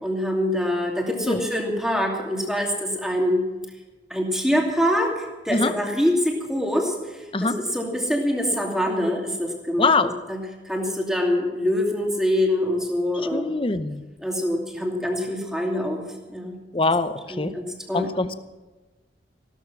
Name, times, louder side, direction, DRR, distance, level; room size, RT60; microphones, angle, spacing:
voice 1, 0.0-3.4 4.1-5.1 5.4-6.9 7.4-9.9 10.3-10.4 10.7-13.5 14.2-16.0 16.3-16.6 17.3-18.1, equal, 5° right, 0 dB, 2.6 m, -24 dB
voice 2, 9.8-10.1 13.3-14.0 16.7-17.5 17.9-18.4, left 3 dB, 30° left, 11 dB, 0.7 m, -23 dB
16.0 x 12.5 x 6.2 m, 1.2 s
head